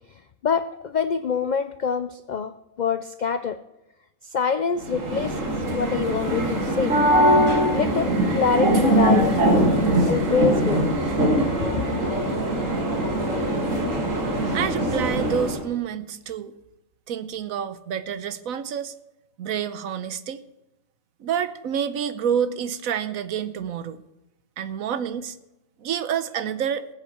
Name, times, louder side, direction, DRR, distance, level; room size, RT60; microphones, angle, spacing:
voice 1, 0.1-3.6 4.2-7.0 7.7-9.3 10.1-10.8 11.6-12.0, left 6 dB, 85° left, 12 dB, 0.4 m, -26 dB
sound 1, 4.8-15.6, right 1 dB, 65° right, 2.3 m, -22 dB
voice 2, 14.5-16.5 17.1-18.9 19.4-20.4 21.2-24.0 24.6-25.4 25.8-26.9, right 8 dB, 85° right, 13 dB, 1.2 m, -28 dB
19.5 x 8.2 x 4.5 m, 0.96 s
omnidirectional pair, 1.4 m